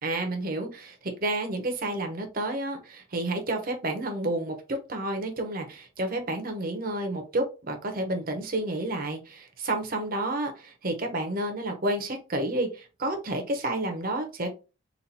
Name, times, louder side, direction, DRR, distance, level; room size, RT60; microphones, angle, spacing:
voice 1, 0.0-14.6, right 1 dB, 45° right, 5 dB, 0.8 m, -30 dB
4.0 x 2.5 x 2.8 m, 0.31 s
head